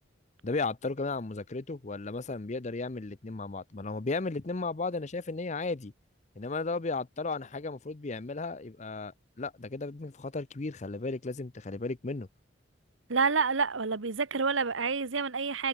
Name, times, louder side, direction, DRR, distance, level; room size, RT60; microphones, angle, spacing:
voice 1, 0.4-5.9 6.3-12.3, left 3 dB, 35° left, 0.7 m, -35 dB
voice 2, 13.1-15.7, right 5 dB, 85° right, 1.2 m, -28 dB
head